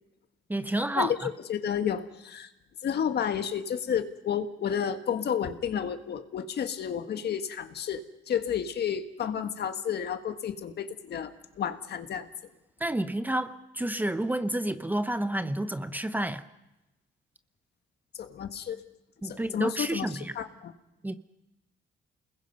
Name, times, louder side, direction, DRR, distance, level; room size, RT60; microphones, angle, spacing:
voice 1, 0.5-1.1 12.8-16.4 19.2-20.3 21.0-21.1, right 1 dB, 10° right, 0.8 m, -30 dB
voice 2, 1.5-2.5 2.8-11.3 11.6-12.3 18.2-18.8 19.2-20.1 20.3-20.7, left 8 dB, 55° left, 1.7 m, -31 dB
29.0 x 20.5 x 5.4 m
cardioid pair, 115°, 20 cm